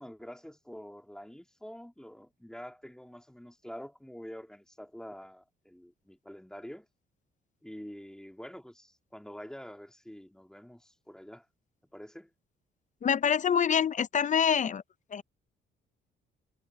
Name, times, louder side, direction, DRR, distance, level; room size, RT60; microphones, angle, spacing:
voice 1, 0.0-6.9 7.6-11.5 11.9-12.3, equal, 5° left, 2.6 m, -46 dB
voice 2, 13.0-14.8 15.1-15.2, left 7 dB, 40° left, 0.5 m, -26 dB
cardioid pair, 90°, 20 cm